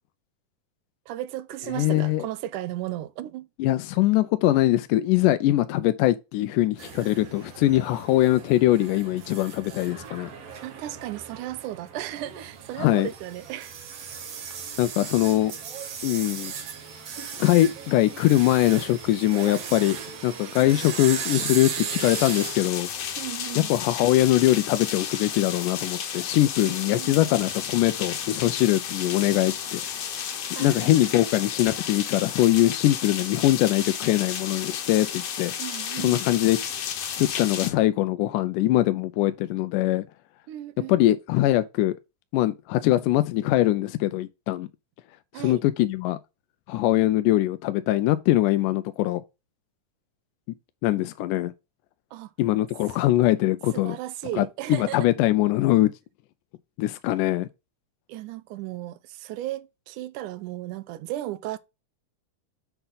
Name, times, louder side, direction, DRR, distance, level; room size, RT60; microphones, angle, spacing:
voice 1, 1.1-3.5 10.6-13.7 23.2-23.7 26.6-27.2 30.6-31.1 35.6-36.2 40.5-41.2 45.3-45.6 52.1-52.3 53.7-55.1 58.1-61.6, right 14 dB, 80° right, 2.1 m, -35 dB
voice 2, 1.7-2.3 3.6-10.3 12.8-13.1 14.8-15.5 16.0-16.5 17.4-20.0 20.2-22.9 23.6-29.8 30.6-35.5 36.0-36.6 37.2-40.0 40.9-41.9 42.3-44.7 45.4-46.2 46.7-49.2 50.8-51.5 52.4-54.0 54.4-55.9 56.8-57.5, left 15 dB, 85° left, 2.1 m, -22 dB
sound 1, 6.8-22.7, right 6 dB, 55° right, 2.2 m, -37 dB
sound 2, 22.0-37.7, left 8 dB, 60° left, 2.0 m, -33 dB
8.0 x 5.7 x 4.0 m
omnidirectional pair, 3.7 m